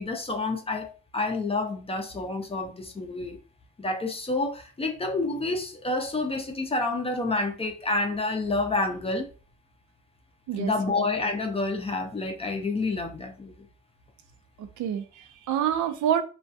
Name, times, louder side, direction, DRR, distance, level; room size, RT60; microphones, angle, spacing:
voice 1, 0.0-3.4 3.8-9.3 10.6-13.7, left 2 dB, 20° left, 0.5 m, -29 dB
voice 2, 14.6-16.2, right 9 dB, 75° right, 0.5 m, -27 dB
2.3 x 2.2 x 2.6 m
cardioid pair, 90°, 30 cm